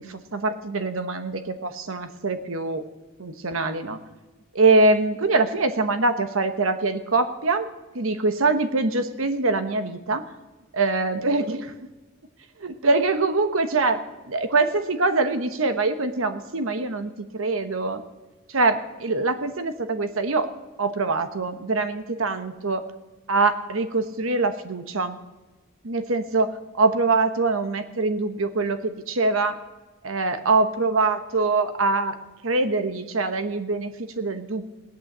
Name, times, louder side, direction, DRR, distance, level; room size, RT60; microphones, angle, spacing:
voice 1, 0.0-2.8 3.2-4.0 4.5-7.7 7.9-10.2 10.7-11.7 12.6-14.0 14.3-18.0 18.5-20.5 20.8-22.8 23.3-25.2 25.8-26.5 26.8-29.6 30.0-32.2 32.4-34.7, right 3 dB, 75° right, 9 dB, 1.0 m, -23 dB
17.0 x 11.5 x 7.3 m, 1.2 s
head